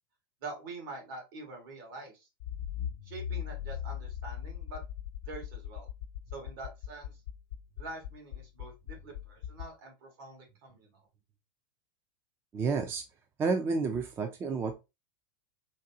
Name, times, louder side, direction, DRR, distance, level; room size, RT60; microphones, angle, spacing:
voice 1, 0.4-2.3 3.0-4.8 5.2-5.9 6.3-7.1 7.8-11.0, right 3 dB, 70° right, 2 dB, 1.7 m, -45 dB
Accelerating revving vroom, 2.4-9.7, left 10 dB, 60° left, 0.5 m, -40 dB
voice 2, 12.5-13.0 13.4-14.7, right 4 dB, 20° right, 5 dB, 0.4 m, -30 dB
3.8 x 2.3 x 2.7 m, 0.25 s
supercardioid pair, 140°, 12 cm